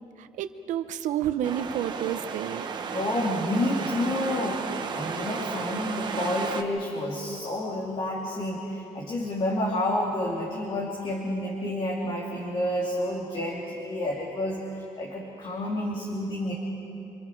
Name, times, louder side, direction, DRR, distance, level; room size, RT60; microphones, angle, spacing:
voice 1, 0.2-2.7, right 10 dB, 85° right, 10 dB, 1.0 m, -30 dB
sound 1, 1.4-6.6, right 5 dB, 35° right, 1.2 m, -33 dB
voice 2, 2.9-14.7 14.9-16.5, left 1 dB, 40° left, -3 dB, 2.8 m, -29 dB
28.0 x 26.0 x 4.7 m, 2.9 s
cardioid pair, 170°, 12 cm